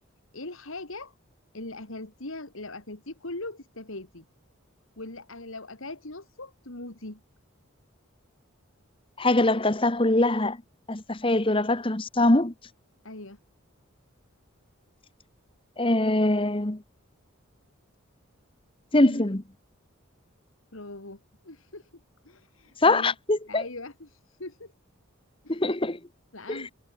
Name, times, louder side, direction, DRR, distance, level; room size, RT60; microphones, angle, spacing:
voice 1, 0.3-1.1 1.5-4.2 5.0-7.2 13.0-13.4 19.0-19.3 20.7-21.9 22.2-23.1 23.5-24.7 25.4-25.6 26.3-26.7, left 2 dB, 70° left, 2.7 m, -40 dB
voice 2, 9.2-10.6 10.9-12.5 15.8-16.8 18.9-19.4 22.8-23.6 25.5-26.0 26.5-26.6, left 2 dB, 25° left, 1.2 m, -23 dB
head